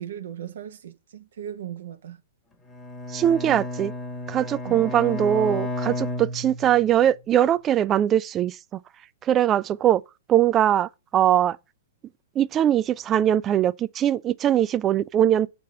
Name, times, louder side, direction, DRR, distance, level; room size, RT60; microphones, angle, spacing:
voice 1, 0.0-2.2 4.6-4.9, right 10 dB, 70° right, 0.9 m, -37 dB
Bowed string instrument, 2.7-7.0, left 2 dB, 10° left, 1.1 m, -32 dB
voice 2, 3.1-3.9 4.3-8.8 9.2-10.0 10.3-11.6 12.4-15.5, right 11 dB, 25° right, 0.3 m, -21 dB
6.6 x 3.4 x 5.1 m
hypercardioid pair, 120°, 0 cm